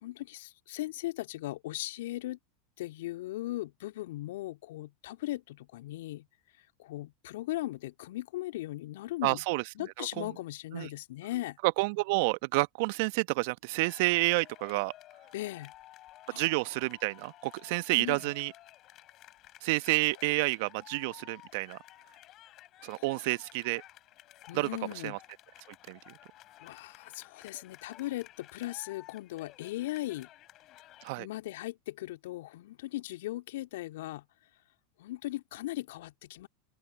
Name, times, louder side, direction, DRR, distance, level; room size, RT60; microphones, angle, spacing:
voice 1, 0.0-2.4 2.8-6.3 6.8-9.4 9.7-11.6 15.3-15.7 16.3-16.4 18.0-18.3 22.9-23.3 24.5-25.2 26.6-30.3 31.2-34.3 35.0-36.5, left 16 dB, 65° left, 2.4 m, -38 dB
voice 2, 9.2-9.6 10.0-10.3 10.7-10.9 11.6-14.9 16.3-18.5 19.6-21.8 22.8-23.8 24.5-24.7 25.0-25.2 25.9-26.1 31.0-31.3, right 25 dB, 60° right, 1.2 m, -29 dB
sound 1, 13.8-31.1, left 15 dB, 45° left, 7.9 m, -54 dB
open air
hypercardioid pair, 85°, 0 cm